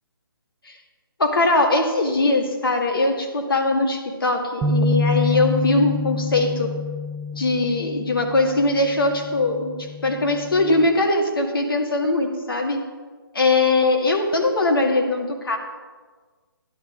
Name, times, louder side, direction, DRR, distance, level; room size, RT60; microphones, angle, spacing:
voice 1, 1.2-6.7 7.4-12.8 13.3-15.6, left 2 dB, 70° left, 3 dB, 1.9 m, -21 dB
sound 1, 4.6-10.9, left 3 dB, 10° right, 0.4 m, -27 dB
12.0 x 11.0 x 3.8 m, 1.4 s
figure-of-eight pair, 145°, 12 cm